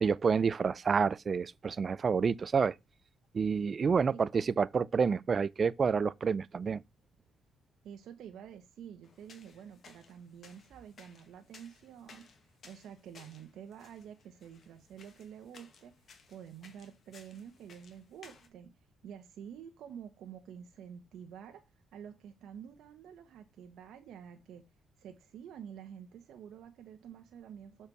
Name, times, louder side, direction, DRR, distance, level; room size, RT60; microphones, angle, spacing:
voice 1, 0.0-2.7 3.3-6.8, right 5 dB, 40° right, 0.4 m, -28 dB
voice 2, 7.8-15.9 16.3-18.7 19.0-21.6 21.9-24.6 25.0-27.9, right 8 dB, 75° right, 1.0 m, -49 dB
sound 1, 9.0-18.5, left 5 dB, 55° left, 1.7 m, -59 dB
6.9 x 4.4 x 4.7 m
cardioid pair, 90°, 0 cm